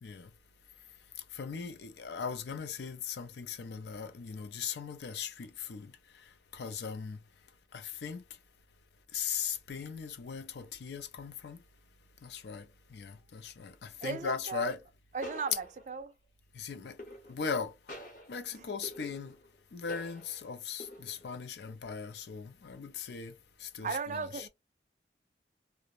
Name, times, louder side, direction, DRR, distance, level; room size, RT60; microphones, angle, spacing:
voice 1, 0.0-0.3 1.2-7.2 7.7-8.2 9.1-11.6 12.2-14.8 16.5-17.0 17.3-18.0 18.3-19.4 19.7-24.5, left 6 dB, 70° left, 0.4 m, -39 dB
sound 1, 12.4-12.7 14.0-14.5 15.2-16.1 17.0-17.6 17.9-19.6 19.9-20.5 20.8-21.4, left 1 dB, 45° left, 0.9 m, -48 dB
voice 2, 14.0-14.7 15.1-16.1 18.5-18.7 23.8-24.5, right 5 dB, 40° right, 0.3 m, -36 dB
2.4 x 2.1 x 2.8 m
head